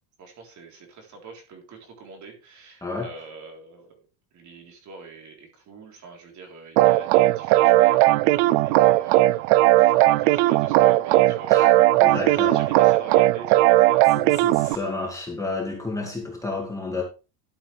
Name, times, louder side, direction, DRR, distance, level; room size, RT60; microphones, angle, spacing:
voice 1, 0.2-4.0 4.3-14.9, right 3 dB, 35° right, 3.8 m, -44 dB
voice 2, 2.8-3.1 11.5-11.7 12.0-12.6 14.1-17.0, left 3 dB, 5° left, 2.2 m, -31 dB
sound 1, 6.8-14.8, right 17 dB, 65° right, 0.6 m, -18 dB
12.5 x 7.7 x 3.4 m
cardioid pair, 155°, 47 cm